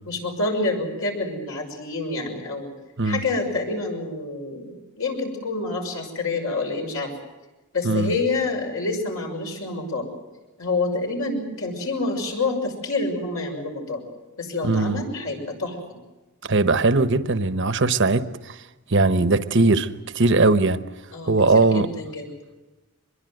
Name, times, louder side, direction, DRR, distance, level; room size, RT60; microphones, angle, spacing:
voice 1, 0.1-2.7 3.0-7.1 7.7-10.1 10.6-14.0 14.4-15.8 21.1-22.3, left 3 dB, 70° left, 6.3 m, -27 dB
voice 2, 14.6-15.0 16.4-18.6 18.9-19.9 20.1-20.8 21.2-21.9, right 3 dB, 55° right, 1.1 m, -19 dB
24.0 x 21.5 x 7.9 m
head